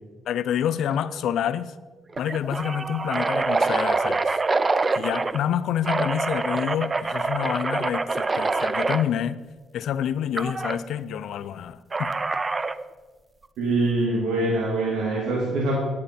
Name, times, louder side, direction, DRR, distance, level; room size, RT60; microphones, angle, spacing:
voice 1, 0.3-1.7 2.2-4.4 5.0-9.4 9.7-12.1, left 9 dB, 75° left, 15 dB, 0.4 m, -28 dB
sound 1, 0.9-1.2 1.5-1.6 2.1-5.4 5.8-9.0 10.4-10.8 11.9-12.8, right 3 dB, 25° right, 0.4 m, -25 dB
voice 2, 13.6-15.8, right 2 dB, 80° right, -3 dB, 2.0 m, -24 dB
9.7 x 8.7 x 4.2 m, 1.3 s
cardioid pair, 90°, 0 cm